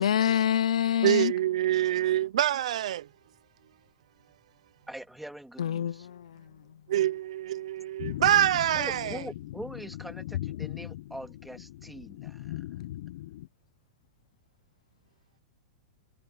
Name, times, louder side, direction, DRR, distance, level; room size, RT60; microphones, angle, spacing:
voice 1, 0.0-1.3 5.6-6.6, left 9 dB, 90° left, 0.5 m, -26 dB
voice 2, 1.0-3.1 6.9-9.3, right 12 dB, 75° right, 0.6 m, -26 dB
voice 3, 4.9-6.1 8.8-12.6, right 1 dB, ahead, 2.7 m, -43 dB
sound 1, 8.0-13.5, left 14 dB, 70° left, 0.9 m, -39 dB
hypercardioid pair, 130°, 3 cm